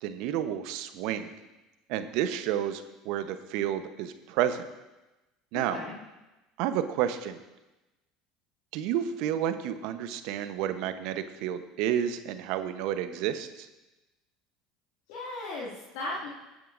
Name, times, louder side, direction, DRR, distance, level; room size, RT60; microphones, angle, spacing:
voice 1, 0.0-1.3 1.9-4.6 5.5-5.8 6.6-7.4 8.7-13.7, right 10 dB, 65° right, 10 dB, 0.9 m, -30 dB
voice 2, 5.5-6.0 15.1-16.3, left 2 dB, 65° left, -6 dB, 2.2 m, -36 dB
22.0 x 9.2 x 2.6 m, 1.1 s
hypercardioid pair, 70°, 0 cm